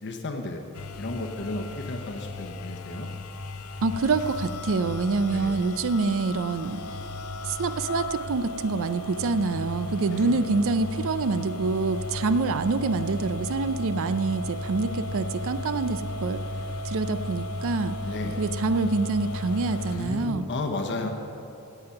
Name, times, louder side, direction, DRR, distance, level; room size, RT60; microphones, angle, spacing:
voice 1, 0.0-0.6 1.0-3.1 5.3-5.5 10.1-10.4 18.0-18.4 20.0-21.1, left 2 dB, 55° left, 4 dB, 1.0 m, -33 dB
sound 1, 0.7-20.3, left 2 dB, 80° left, 0.6 m, -35 dB
voice 2, 3.8-6.8 7.4-16.4 16.8-18.0 18.4-20.5, right 3 dB, 65° right, 12 dB, 0.5 m, -26 dB
17.5 x 7.8 x 5.7 m, 2.9 s
head